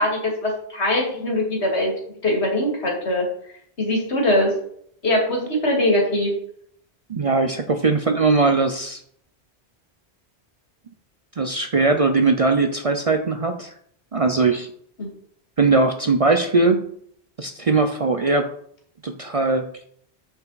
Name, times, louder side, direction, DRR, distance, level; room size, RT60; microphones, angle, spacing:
voice 1, 0.0-1.9 2.2-3.3 3.8-4.5 5.0-6.3 15.0-15.1, left 1 dB, 80° left, 0 dB, 2.3 m, -21 dB
voice 2, 7.1-9.0 11.4-13.7 14.1-14.7 15.6-16.8 17.4-18.5 19.0-19.9, right 3 dB, 45° right, 6 dB, 0.5 m, -20 dB
6.9 x 5.6 x 4.0 m, 0.65 s
omnidirectional pair, 1.1 m